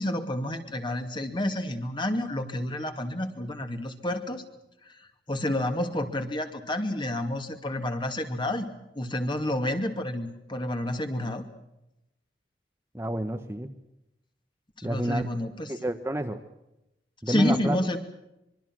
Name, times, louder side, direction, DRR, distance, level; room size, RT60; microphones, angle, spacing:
voice 1, 0.0-4.4 4.9-5.0 5.3-8.7 9.0-11.4 14.8-15.7 17.3-18.0, left 1 dB, 25° left, 6 dB, 2.5 m, -29 dB
voice 2, 12.9-13.7 14.8-15.2 15.7-16.4 17.2-17.8, right 1 dB, 15° right, 6 dB, 1.1 m, -29 dB
25.0 x 23.0 x 6.3 m, 0.90 s
head